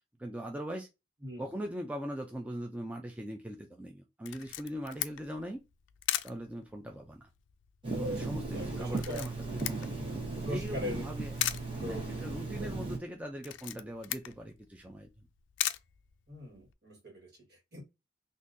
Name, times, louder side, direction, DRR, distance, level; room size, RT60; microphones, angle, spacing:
voice 1, 0.2-0.9 1.4-5.6 6.2-7.3 8.0-11.4 11.8-15.3, equal, 5° right, 0.4 m, -41 dB
Camera, 4.2-16.7, left 14 dB, 85° left, 0.3 m, -40 dB
Telephone, 7.8-13.0, right 3 dB, 30° right, 1.0 m, -36 dB
voice 2, 8.5-9.3 9.9-11.1 11.8-12.7 16.3-17.8, left 1 dB, 60° right, 1.6 m, -42 dB
3.8 x 2.5 x 2.6 m
head